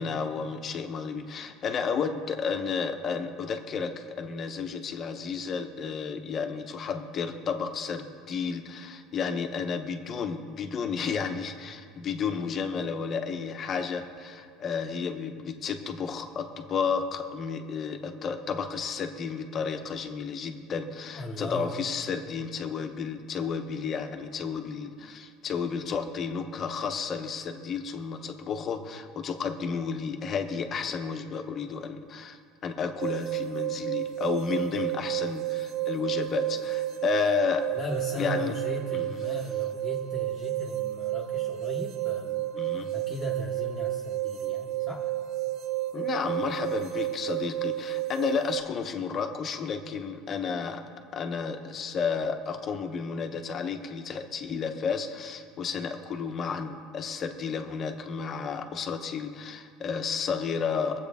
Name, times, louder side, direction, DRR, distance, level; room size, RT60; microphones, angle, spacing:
voice 1, 0.0-37.7 38.1-38.6 38.9-39.0 42.5-42.9 45.9-50.8 51.1-61.0, left 6 dB, 25° left, 6 dB, 0.9 m, -32 dB
voice 2, 21.1-21.7 37.7-42.5 42.9-45.1, equal, 5° left, -7 dB, 1.1 m, -37 dB
sound 1, 33.0-48.6, right 14 dB, 45° right, 0.4 m, -31 dB
23.5 x 7.9 x 3.5 m, 2.2 s
cardioid pair, 170°, 0 cm